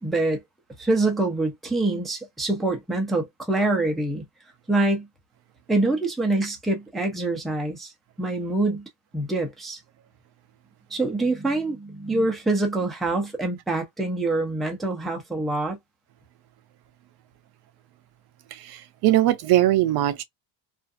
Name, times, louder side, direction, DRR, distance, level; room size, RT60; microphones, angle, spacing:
voice 1, 0.0-0.4 0.8-4.2 4.7-5.1 5.7-7.9 8.2-8.9 9.1-9.8 10.9-15.8, right 2 dB, ahead, 0.4 m, -25 dB
voice 2, 18.5-20.2, right 14 dB, 55° right, 0.5 m, -21 dB
2.5 x 2.4 x 2.4 m
cardioid pair, 145°, 49 cm